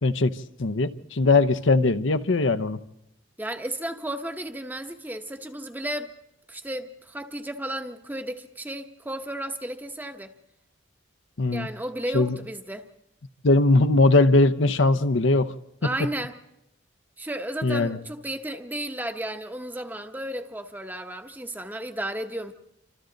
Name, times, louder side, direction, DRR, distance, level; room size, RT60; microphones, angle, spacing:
voice 1, 0.0-2.8 11.4-11.7 12.1-12.4 13.4-15.5 17.6-18.0, left 2 dB, 75° left, 0.8 m, -20 dB
voice 2, 3.4-6.1 6.5-10.3 11.5-12.9 15.8-16.4 17.2-22.5, right 1 dB, 10° right, 0.9 m, -33 dB
27.5 x 26.0 x 4.0 m
head